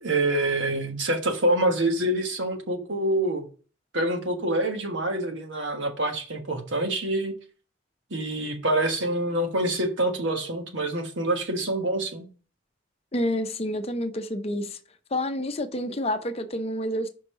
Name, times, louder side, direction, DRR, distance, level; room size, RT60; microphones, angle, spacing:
voice 1, 0.0-3.5 3.9-7.3 8.1-12.3, right 1 dB, 70° right, 1.4 m, -26 dB
voice 2, 13.1-14.8 15.1-17.1, left 1 dB, 30° left, 0.7 m, -28 dB
5.4 x 5.0 x 5.5 m
head